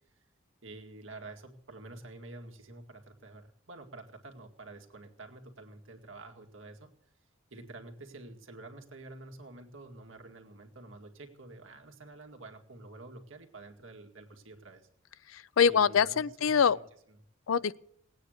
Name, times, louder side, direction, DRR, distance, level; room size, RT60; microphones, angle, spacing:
voice 1, 0.6-6.9 7.5-14.9 15.6-17.2, right 2 dB, 80° right, 2.2 m, -49 dB
voice 2, 15.3-16.8 17.5-17.8, left 6 dB, 85° left, 0.5 m, -25 dB
18.5 x 9.2 x 6.5 m
head